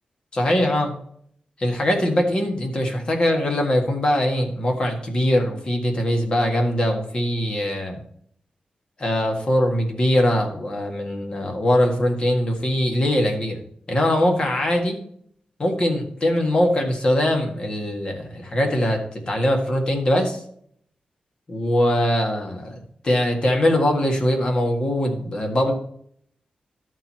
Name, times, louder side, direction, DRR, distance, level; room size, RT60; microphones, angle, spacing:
voice 1, 0.3-0.9 1.6-8.0 9.0-13.6 13.9-15.0 15.6-19.0 19.3-20.4 21.5-22.8 23.0-25.7, left 1 dB, 35° left, 2 dB, 1.7 m, -21 dB
12.0 x 4.6 x 4.3 m, 0.65 s
wide cardioid pair, 160°, 3 cm